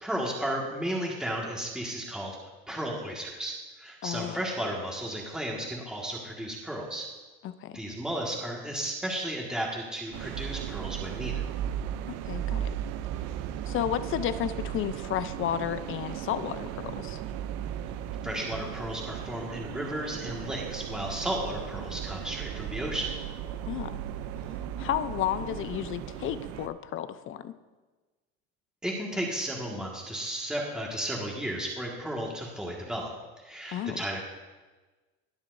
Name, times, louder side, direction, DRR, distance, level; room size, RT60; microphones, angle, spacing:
voice 1, 0.0-2.4 2.7-7.1 7.7-11.4 18.2-23.2 28.8-34.2, right 1 dB, ahead, -2 dB, 1.8 m, -34 dB
voice 2, 4.0-4.4 7.4-7.8 12.1-12.7 13.7-17.2 23.7-24.0 24.8-27.5 33.7-34.0, left 11 dB, 45° left, 13 dB, 0.6 m, -32 dB
sound 1, 10.1-26.7, right 10 dB, 60° right, 0.6 m, -36 dB
21.0 x 7.2 x 2.7 m, 1.3 s
supercardioid pair, 105°, 29 cm